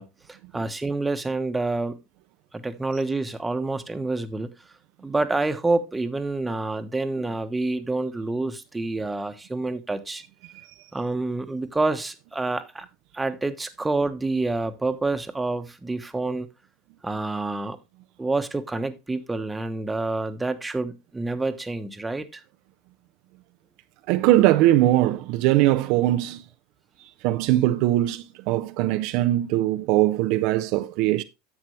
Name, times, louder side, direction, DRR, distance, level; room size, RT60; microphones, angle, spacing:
voice 1, 0.0-2.0 2.5-4.5 5.0-10.2 10.9-12.9 13.1-16.5 17.0-17.8 18.2-22.4, right 2 dB, 10° right, 1.1 m, -28 dB
voice 2, 24.1-26.4 27.2-31.2, right 15 dB, 60° right, 0.5 m, -21 dB
10.5 x 7.4 x 3.2 m
hypercardioid pair, 85°, 0 cm